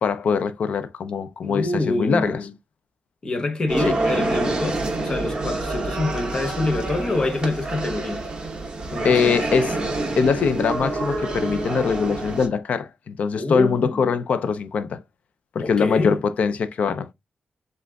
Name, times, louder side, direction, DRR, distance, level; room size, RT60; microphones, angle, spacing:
voice 1, 0.0-2.4 3.9-4.0 9.0-9.8 10.2-15.0 15.5-17.1, left 5 dB, 65° left, 0.5 m, -22 dB
voice 2, 1.4-2.5 3.2-8.3 8.9-9.4 13.3-14.1 15.6-16.2, left 2 dB, 30° left, 0.9 m, -26 dB
sound 1, 3.7-12.5, right 2 dB, 30° right, 1.0 m, -27 dB
7.4 x 2.5 x 2.3 m
wide cardioid pair, 155°, 3 cm